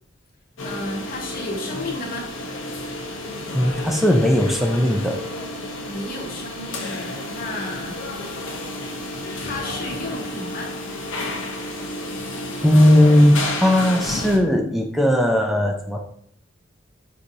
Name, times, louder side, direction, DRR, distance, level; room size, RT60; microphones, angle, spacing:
sound 1, 0.6-14.4, left 2 dB, 80° left, 0.7 m, -31 dB
voice 1, 0.6-2.3 5.9-8.0 9.4-10.7, left 2 dB, 50° left, -3 dB, 0.9 m, -32 dB
voice 2, 3.5-5.2 12.6-16.0, left 1 dB, ahead, 2 dB, 0.3 m, -17 dB
4.5 x 2.6 x 2.7 m, 0.65 s
head